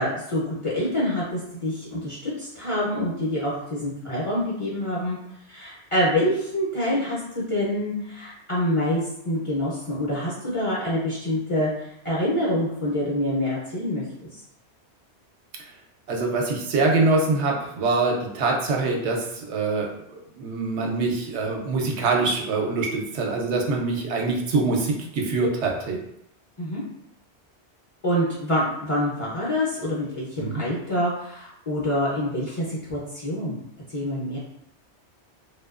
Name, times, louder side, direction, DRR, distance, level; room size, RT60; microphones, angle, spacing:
voice 1, 0.0-5.2 5.5-14.0 14.3-14.4 26.6-26.8 28.0-33.6 33.9-34.4, left 1 dB, 35° left, -7 dB, 0.6 m, -26 dB
voice 2, 16.1-19.9 20.4-26.0 30.4-30.6, right 3 dB, 75° right, 0 dB, 0.8 m, -24 dB
2.7 x 2.2 x 2.3 m, 0.75 s
omnidirectional pair, 1.2 m